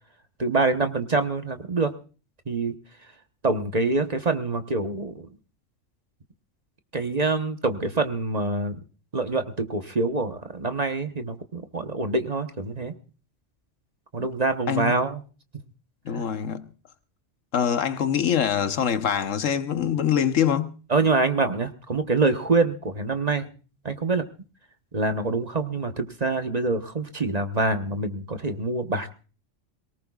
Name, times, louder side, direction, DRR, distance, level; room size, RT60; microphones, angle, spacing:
voice 1, 0.4-1.9 2.5-2.7 3.4-5.3 6.9-8.8 9.1-12.9 14.1-15.2 16.1-16.2 20.9-23.5 23.8-24.2 24.9-29.1, right 3 dB, 35° right, 1.1 m, -25 dB
voice 2, 16.0-16.6 17.5-20.8, left 8 dB, 80° left, 1.4 m, -24 dB
22.5 x 18.5 x 2.4 m
omnidirectional pair, 1.3 m